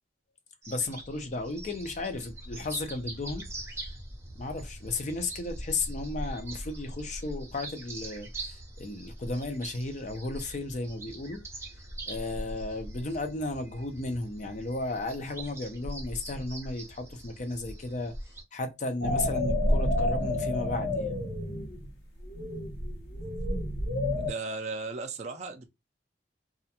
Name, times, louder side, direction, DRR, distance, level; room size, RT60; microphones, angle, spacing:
sound 1, 0.6-18.4, right 1 dB, 15° right, 0.7 m, -42 dB
voice 1, 0.7-3.5 4.4-11.4 12.1-18.1 18.5-21.2, left 2 dB, 45° left, 0.5 m, -34 dB
sound 2, 19.0-21.9 22.2-24.3, left 1 dB, 75° left, 0.9 m, -29 dB
voice 2, 24.2-25.7, right 3 dB, 40° right, 0.4 m, -36 dB
2.4 x 2.2 x 2.7 m
head